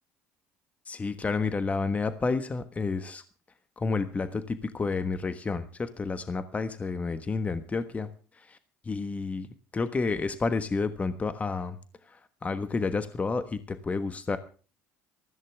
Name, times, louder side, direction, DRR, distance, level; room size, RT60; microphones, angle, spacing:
voice 1, 0.9-3.2 3.8-8.1 8.9-9.5 9.7-11.8 12.4-14.4, left 4 dB, 25° left, 10 dB, 1.3 m, -30 dB
19.5 x 14.5 x 3.5 m, 0.38 s
supercardioid pair, 95°, 6 cm